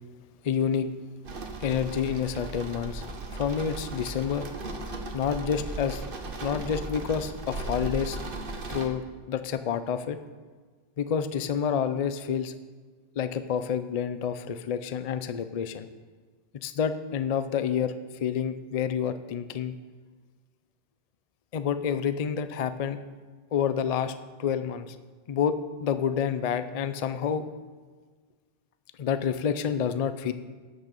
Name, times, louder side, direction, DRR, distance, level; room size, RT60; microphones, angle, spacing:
voice 1, 0.4-0.9 1.6-3.0 3.3-4.5 5.1-6.0 6.4-8.2 8.7-9.0 9.3-10.2 11.0-12.5 13.2-15.9 16.6-17.9 18.2-19.7 21.5-23.0 23.5-24.1 24.4-24.9 25.3-27.4 29.0-30.3, left 7 dB, 50° left, 11 dB, 0.5 m, -28 dB
sound 1, 1.2-8.9, right 2 dB, 55° right, 1.2 m, -37 dB
11.0 x 6.1 x 6.8 m, 1.5 s
omnidirectional pair, 1.1 m